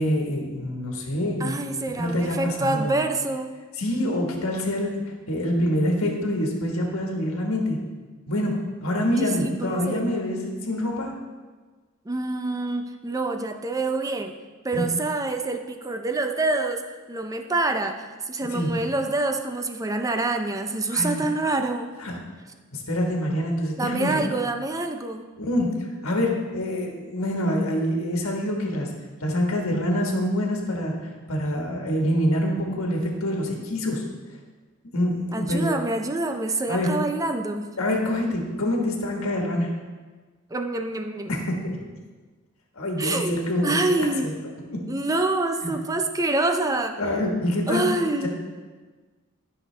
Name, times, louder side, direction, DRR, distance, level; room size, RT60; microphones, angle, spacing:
voice 1, 0.0-1.7 2.0-2.9 3.8-4.9 5.3-7.8 8.3-8.5 8.8-11.1 14.7-14.8 18.5-18.7 20.9-21.2 22.0-22.1 22.7-24.2 25.4-25.7 26.0-28.9 29.2-30.9 31.3-34.0 34.9-35.7 36.7-36.9 37.8-39.7 41.3-41.5 42.8-44.3 44.7-44.8 45.6-45.8 47.0-47.9, left 1 dB, 70° left, 0 dB, 1.5 m, -26 dB
voice 2, 1.4-3.5 9.2-10.0 12.1-14.3 14.6-16.8 17.1-21.9 23.8-25.3 35.3-37.7 40.5-41.3 43.0-44.3 44.9-47.0 47.7-48.3, right 2 dB, 15° right, 6 dB, 0.5 m, -26 dB
13.0 x 5.8 x 3.3 m, 1.4 s
head